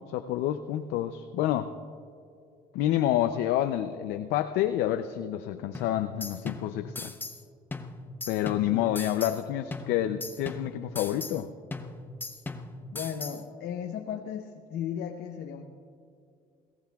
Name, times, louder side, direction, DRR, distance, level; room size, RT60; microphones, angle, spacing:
voice 1, 0.0-1.7 2.7-7.1 8.3-11.5, left 12 dB, 90° left, 8 dB, 0.5 m, -28 dB
sound 1, 5.7-7.4 7.7-9.4 9.7-11.4 11.7-13.4, left 2 dB, 10° left, 0.7 m, -39 dB
voice 2, 12.9-15.7, left 8 dB, 70° left, 4 dB, 0.8 m, -35 dB
21.5 x 17.5 x 2.3 m, 2.4 s
cardioid pair, 110°, 17 cm